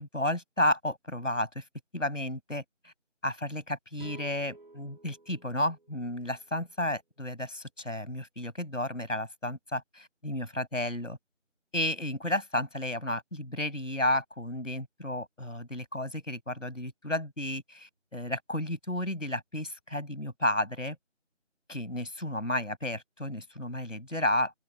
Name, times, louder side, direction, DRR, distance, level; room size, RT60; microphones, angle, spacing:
voice 1, 0.0-1.6 1.9-2.9 3.2-11.2 11.7-21.0 21.7-24.5, left 1 dB, 80° left, 7.2 m, -32 dB
sound 1, 4.0-7.3, right 2 dB, 45° right, 7.9 m, -52 dB
open air
figure-of-eight pair, 170°, 37 cm